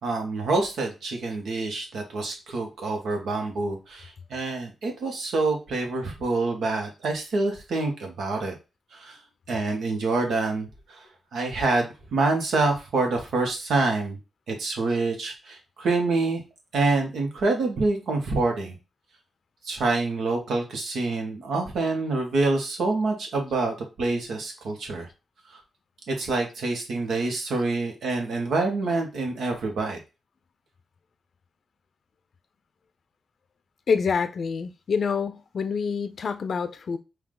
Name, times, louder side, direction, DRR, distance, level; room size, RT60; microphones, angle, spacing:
voice 1, 0.0-8.5 8.9-9.2 9.5-14.2 14.5-16.4 16.7-18.7 19.6-25.1 25.5-25.6 26.1-30.0, right 3 dB, 80° right, 1.4 m, -26 dB
voice 2, 33.9-37.0, left 5 dB, 60° left, 0.5 m, -26 dB
4.7 x 2.8 x 3.8 m
cardioid pair, 65°, 0 cm